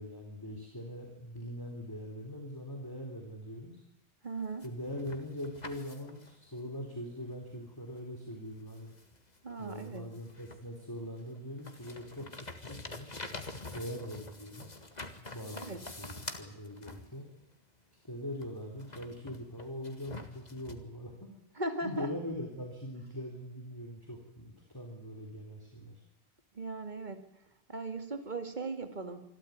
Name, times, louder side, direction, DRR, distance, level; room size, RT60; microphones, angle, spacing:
voice 1, 0.0-3.8 4.6-8.9 9.6-13.2 13.7-14.7 15.3-17.3 18.0-26.0, equal, 20° left, 1 dB, 3.7 m, -42 dB
voice 2, 4.2-4.6 9.4-10.0 15.6-15.8 21.6-22.1 26.6-27.3 27.7-29.2, right 2 dB, 45° right, 8 dB, 2.4 m, -38 dB
sound 1, 4.4-6.4 8.0-8.1 8.7-10.8 11.2-17.4 18.4-20.7, left 2 dB, 40° left, 2.1 m, -46 dB
26.0 x 13.0 x 9.5 m, 0.91 s
omnidirectional pair, 1.0 m